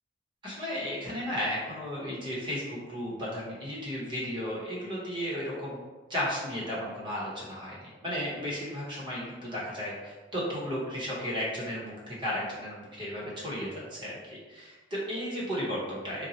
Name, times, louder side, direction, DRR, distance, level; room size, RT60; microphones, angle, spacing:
voice 1, 0.4-5.8 6.1-16.3, equal, 25° right, -6 dB, 0.9 m, -34 dB
4.0 x 2.2 x 2.8 m, 1.3 s
head